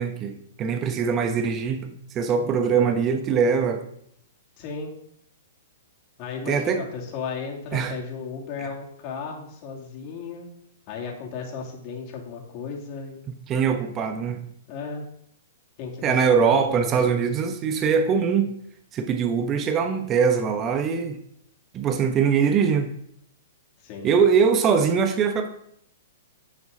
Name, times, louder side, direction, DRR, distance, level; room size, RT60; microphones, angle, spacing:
voice 1, 0.0-3.8 6.5-6.8 7.7-8.0 13.3-14.4 16.0-18.5 18.9-21.2 21.7-22.9 24.0-25.5, right 6 dB, 25° right, 6 dB, 1.0 m, -22 dB
voice 2, 4.6-4.9 6.2-10.5 10.9-13.2 14.7-15.0 15.8-17.2 23.8-24.1, left 5 dB, 40° left, -1 dB, 2.9 m, -35 dB
10.5 x 7.1 x 4.0 m, 0.72 s
hypercardioid pair, 125°, 0 cm